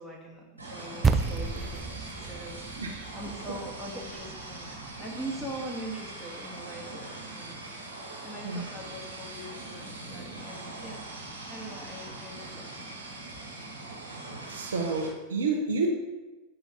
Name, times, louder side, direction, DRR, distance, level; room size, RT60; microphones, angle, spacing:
voice 1, 0.0-4.7 5.0-11.0 11.5-13.0, right 1 dB, 5° left, -3 dB, 1.5 m, -42 dB
sound 1, 0.6-15.1, right 2 dB, 80° right, 1.7 m, -42 dB
sound 2, 1.0-5.6, right 4 dB, 15° right, 0.3 m, -32 dB
voice 2, 14.5-15.9, right 4 dB, 65° right, 1 dB, 1.0 m, -29 dB
8.8 x 5.5 x 2.9 m, 1.1 s
figure-of-eight pair, 90°, 0 cm